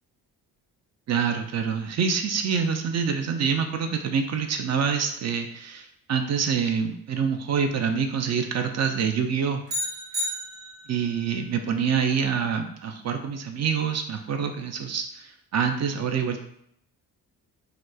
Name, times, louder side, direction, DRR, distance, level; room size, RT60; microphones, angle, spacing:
voice 1, 1.1-9.6 10.9-16.4, right 6 dB, 35° right, 5 dB, 0.4 m, -26 dB
sound 1, 9.7-11.1, equal, 60° right, 1.1 m, -31 dB
2.9 x 2.4 x 2.2 m, 0.71 s
hypercardioid pair, 40°, 47 cm